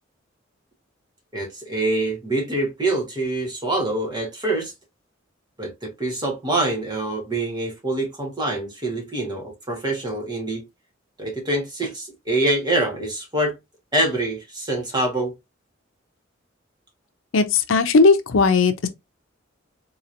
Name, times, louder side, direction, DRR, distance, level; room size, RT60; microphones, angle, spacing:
voice 1, 1.3-4.7 5.6-10.6 11.2-13.5 13.9-15.3, right 1 dB, 20° right, 1.3 m, -25 dB
voice 2, 17.3-18.9, left 4 dB, 80° left, 0.6 m, -17 dB
4.0 x 3.0 x 2.5 m
head